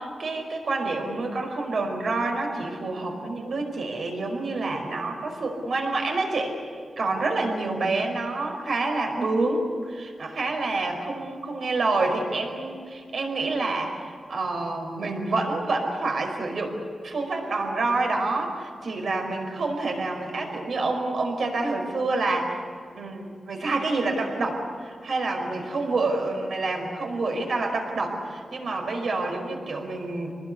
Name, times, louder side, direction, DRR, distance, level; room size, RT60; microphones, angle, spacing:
voice 1, 0.0-6.5 7.0-16.8 17.0-22.6 22.9-30.3, right 3 dB, 60° right, 3 dB, 5.0 m, -28 dB
28.0 x 20.5 x 8.3 m, 2.1 s
wide cardioid pair, 145°, 0 cm